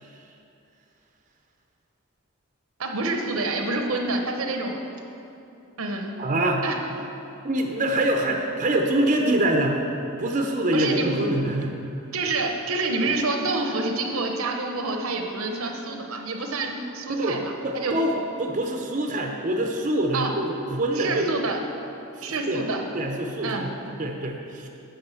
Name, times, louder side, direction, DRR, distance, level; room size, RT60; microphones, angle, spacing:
voice 1, 2.8-4.8 5.8-6.1 6.6-6.8 10.7-11.1 12.1-18.0 20.1-20.3 21.0-21.6 22.2-22.8 23.4-24.0, right 3 dB, 80° right, 3 dB, 0.8 m, -27 dB
voice 2, 6.2-6.6 7.4-9.9 10.2-11.8 17.1-21.3 22.2-22.7 22.9-23.7 24.0-24.7, right 1 dB, 35° right, 2 dB, 0.6 m, -25 dB
9.7 x 3.9 x 6.9 m, 2.8 s
head